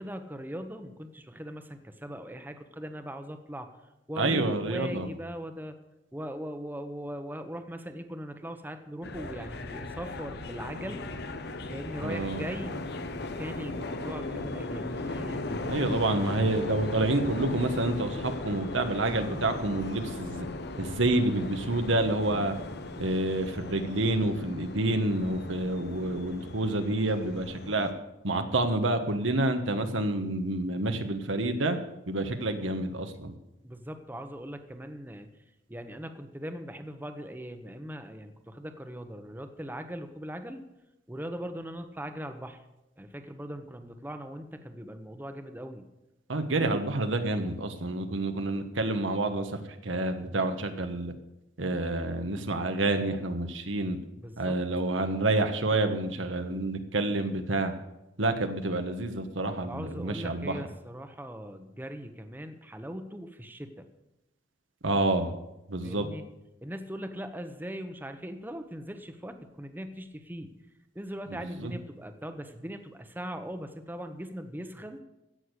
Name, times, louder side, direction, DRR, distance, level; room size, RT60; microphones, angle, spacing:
voice 1, 0.0-3.7 4.1-5.8 6.1-11.1 11.7-12.9 13.2-16.1 32.5-32.7 33.6-35.3 35.7-40.6 41.1-42.6 43.0-45.9 54.2-54.6 59.6-63.9 65.8-66.2 66.6-70.5 70.9-75.0, equal, 10° right, 7 dB, 0.9 m, -40 dB
voice 2, 4.2-5.1 12.0-12.4 15.7-20.5 20.8-22.5 23.0-27.9 28.2-31.8 32.1-33.3 46.3-51.1 51.6-54.0 54.4-57.7 58.2-60.6 64.8-65.3 65.7-66.1 71.4-71.7, right 2 dB, 90° right, 7 dB, 1.4 m, -28 dB
sound 1, 9.0-27.9, left 2 dB, 60° left, 1.0 m, -37 dB
16.0 x 6.5 x 8.1 m, 0.92 s
head